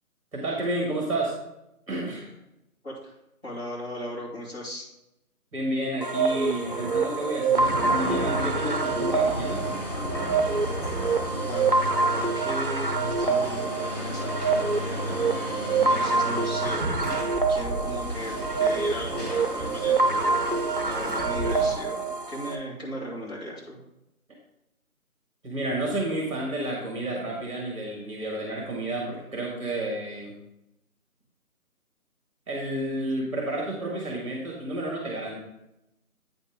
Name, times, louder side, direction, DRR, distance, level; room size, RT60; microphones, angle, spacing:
voice 1, 0.3-1.3 1.9-2.3 5.5-9.7 25.4-30.3 32.5-35.3, right 1 dB, 20° right, -2 dB, 1.4 m, -30 dB
voice 2, 3.4-4.9 11.4-17.1 17.5-20.4 20.8-23.8, equal, 40° left, -6 dB, 2.7 m, -37 dB
sound 1, 6.0-22.6, right 4 dB, 40° right, 0.6 m, -26 dB
sound 2, 7.5-21.7, equal, 25° left, 1.8 m, -33 dB
8.8 x 5.4 x 3.6 m, 0.87 s
figure-of-eight pair, 165°, 45 cm